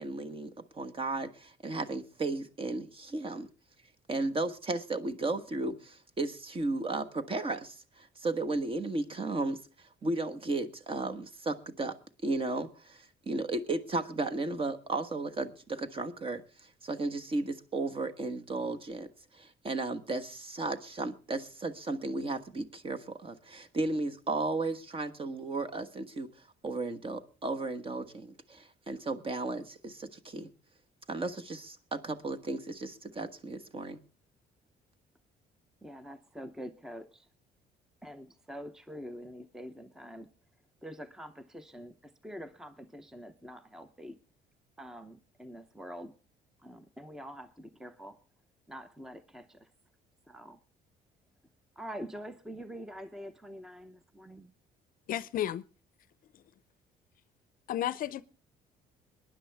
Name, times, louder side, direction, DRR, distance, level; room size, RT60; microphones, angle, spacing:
voice 1, 0.0-3.5 4.1-9.6 10.0-12.0 12.2-19.1 19.3-26.3 26.6-30.5 31.1-34.0, right 2 dB, 30° right, 1.3 m, -34 dB
voice 2, 35.8-37.3 38.0-40.3 40.8-44.2 44.8-46.1 46.6-48.2 48.7-49.7 50.3-50.6 51.8-54.5, equal, 5° right, 0.7 m, -45 dB
voice 3, 55.1-55.6 57.7-58.2, left 12 dB, 55° left, 0.6 m, -32 dB
22.5 x 10.5 x 3.5 m
cardioid pair, 110°, 17 cm